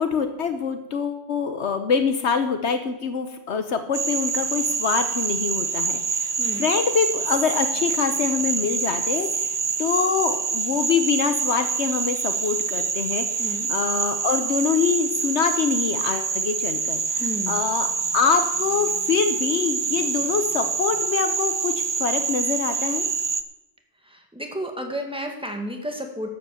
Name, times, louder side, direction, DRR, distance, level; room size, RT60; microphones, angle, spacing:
voice 1, 0.0-6.3 6.6-17.9 18.1-21.7 22.0-23.1, left 6 dB, 75° left, 8 dB, 1.2 m, -25 dB
Frog, 3.9-23.4, right 5 dB, 35° right, 0.4 m, -26 dB
voice 2, 6.4-6.7 13.4-13.7 17.2-17.6 24.1-26.3, equal, 5° right, 3 dB, 1.8 m, -32 dB
12.5 x 8.2 x 7.0 m, 0.90 s
omnidirectional pair, 1.2 m